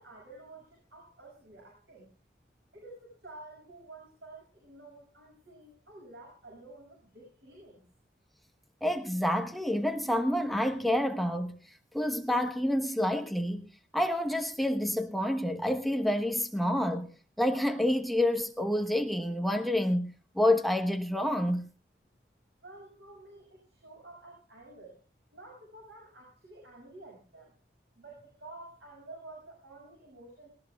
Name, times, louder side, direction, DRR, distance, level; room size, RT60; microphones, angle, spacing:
voice 1, 0.0-2.1 2.7-7.8 22.6-25.0 25.3-27.5 28.0-30.5, right 2 dB, 85° right, 7.1 m, -50 dB
voice 2, 8.8-11.6 11.9-13.7 13.9-17.1 17.4-21.7, left 1 dB, ahead, 1.1 m, -28 dB
19.5 x 19.5 x 2.3 m
head